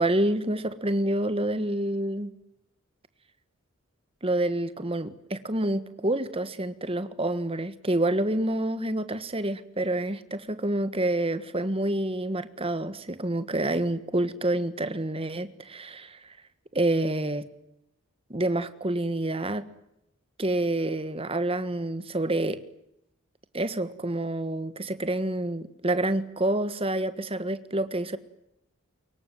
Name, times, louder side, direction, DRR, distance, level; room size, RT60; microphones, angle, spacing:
voice 1, 0.0-2.3 4.2-16.3 16.7-17.5 18.3-19.6 20.4-22.6 23.5-28.2, right 1 dB, 25° right, 12 dB, 1.5 m, -28 dB
24.5 x 22.5 x 9.3 m, 0.82 s
head